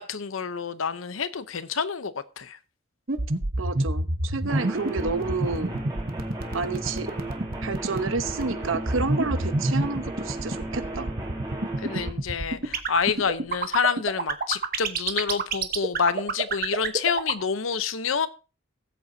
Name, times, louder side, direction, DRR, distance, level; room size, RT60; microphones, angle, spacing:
voice 1, 0.0-2.6 11.8-18.3, left 6 dB, 80° left, 13 dB, 0.8 m, -28 dB
sound 1, 3.1-17.4, right 2 dB, 45° right, 1.1 m, -26 dB
voice 2, 3.6-5.7 6.5-7.1 7.6-11.1, right 4 dB, 80° right, 11 dB, 0.9 m, -30 dB
sound 2, 4.5-12.1, right 2 dB, 20° right, 2.7 m, -36 dB
sound 3, 5.0-13.6, left 1 dB, 5° right, 2.6 m, -44 dB
18.5 x 8.0 x 2.7 m, 0.33 s
head